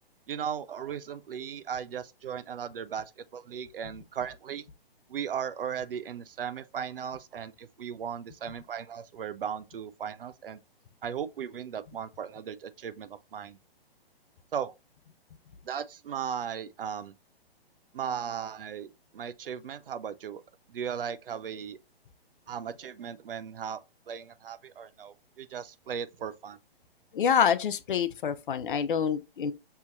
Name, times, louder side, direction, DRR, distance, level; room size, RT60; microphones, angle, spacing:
voice 1, 0.3-4.7 5.1-10.6 11.0-13.6 14.5-14.7 15.6-17.1 17.9-20.4 20.7-21.8 22.5-23.8 24.1-26.6, right 8 dB, 65° right, 0.5 m, -37 dB
voice 2, 27.1-29.5, left 7 dB, 55° left, 0.5 m, -26 dB
5.5 x 2.8 x 2.4 m
figure-of-eight pair, 125°, 31 cm